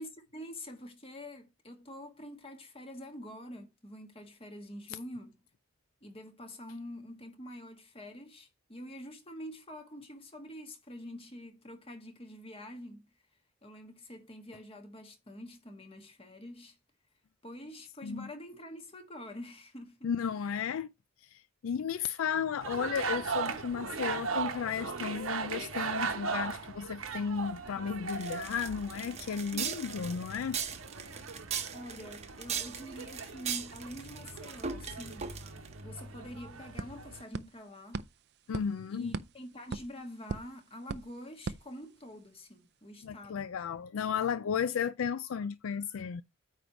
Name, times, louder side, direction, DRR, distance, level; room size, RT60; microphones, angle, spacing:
voice 1, 0.0-5.4 6.0-13.1 13.6-16.8 17.4-20.1 20.4-20.7 29.5-30.2 31.7-35.3 35.8-38.1 38.9-43.6, left 1 dB, 25° left, 1.5 m, -46 dB
voice 2, 20.0-20.9 21.3-30.6 38.5-39.1 43.0-46.2, left 7 dB, 70° left, 0.4 m, -34 dB
sound 1, 22.6-37.2, right 5 dB, 70° right, 1.0 m, -39 dB
sound 2, 28.1-35.7, right 7 dB, 30° right, 0.9 m, -38 dB
sound 3, 36.0-42.4, right 4 dB, 50° right, 0.5 m, -43 dB
9.2 x 3.2 x 5.9 m
head